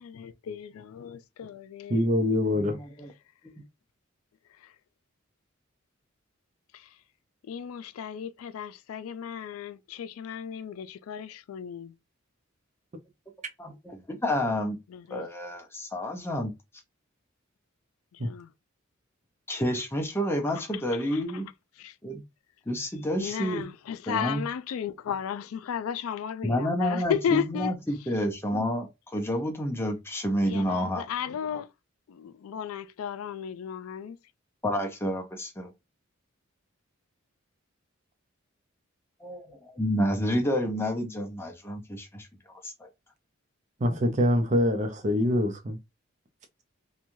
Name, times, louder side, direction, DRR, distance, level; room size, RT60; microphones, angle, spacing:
voice 1, 0.0-2.0 4.5-4.8 6.7-7.0 7.4-11.9 14.9-15.3 18.1-18.5 20.6-21.4 21.8-22.0 23.2-27.7 28.5-28.7 30.4-31.7 32.1-34.2, left 8 dB, 85° left, 0.3 m, -34 dB
voice 2, 1.9-2.8 18.2-18.3 43.8-45.8, left 1 dB, 35° right, 0.5 m, -24 dB
voice 3, 2.6-3.1 13.6-14.8 15.1-16.5 19.5-21.5 22.0-22.2 22.7-23.6 24.1-24.4 26.4-31.0 34.6-35.7 39.2-42.3 42.6-42.9, equal, 10° left, 0.6 m, -29 dB
3.0 x 2.3 x 2.6 m
head